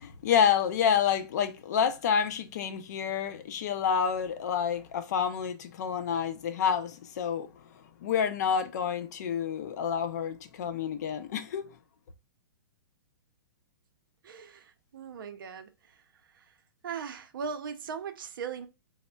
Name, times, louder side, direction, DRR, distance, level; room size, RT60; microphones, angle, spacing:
voice 1, 0.0-7.5 8.0-11.7, left 7 dB, 50° left, 0.5 m, -28 dB
voice 2, 14.2-16.0 16.3-16.5 16.8-18.7, right 6 dB, 75° right, 0.5 m, -39 dB
4.1 x 2.0 x 2.2 m
hypercardioid pair, 160°, 11 cm